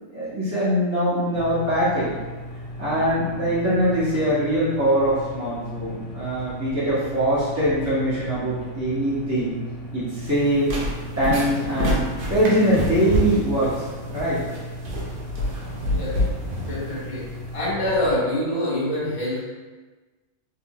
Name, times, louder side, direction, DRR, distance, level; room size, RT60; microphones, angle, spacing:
voice 1, 0.1-2.1 2.8-9.5 9.9-10.7 11.2-14.4, equal, 15° right, -12 dB, 0.9 m, -22 dB
sound 1, 1.3-18.1, equal, 75° left, 0.4 m, -37 dB
sound 2, 10.3-17.7, equal, 50° right, 0.7 m, -28 dB
voice 2, 15.9-16.2 16.6-17.3 17.5-19.4, left 1 dB, 25° left, -9 dB, 1.1 m, -25 dB
3.6 x 3.3 x 2.4 m, 1.3 s
omnidirectional pair, 1.5 m